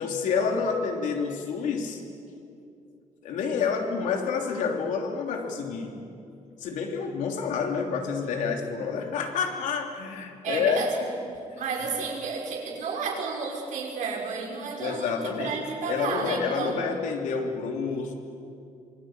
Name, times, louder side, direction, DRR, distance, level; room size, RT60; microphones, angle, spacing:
voice 1, 0.0-2.0 3.2-6.0 6.6-11.1 11.5-11.6 14.8-15.6 15.9-18.1, left 5 dB, 90° left, 3 dB, 3.1 m, -28 dB
voice 2, 10.4-11.1 11.6-16.8, right 5 dB, 85° right, 0 dB, 5.8 m, -32 dB
26.0 x 22.0 x 8.9 m, 2.6 s
cardioid pair, 135°, 13 cm